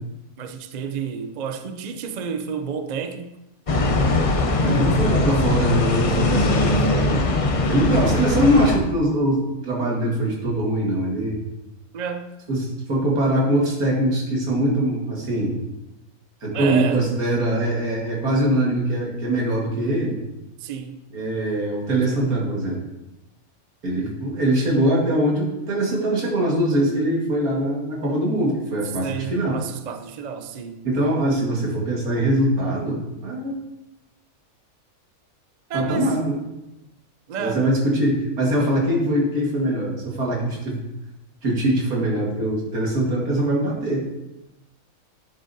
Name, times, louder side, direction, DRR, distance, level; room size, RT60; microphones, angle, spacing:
voice 1, 0.4-3.3 4.6-4.9 11.9-12.4 16.5-17.0 20.6-21.0 29.0-30.8 35.7-36.1 37.3-37.6, right 6 dB, 65° right, 8 dB, 0.4 m, -30 dB
sound 1, 3.7-8.8, left 2 dB, 50° left, 0.4 m, -20 dB
voice 2, 4.6-7.4 7.7-11.4 12.5-15.6 16.4-20.2 21.1-22.8 23.8-29.6 30.8-33.5 35.7-36.4 37.4-40.8 41.4-44.1, right 1 dB, 80° right, -3 dB, 2.3 m, -22 dB
9.8 x 7.4 x 2.7 m, 0.96 s
omnidirectional pair, 1.5 m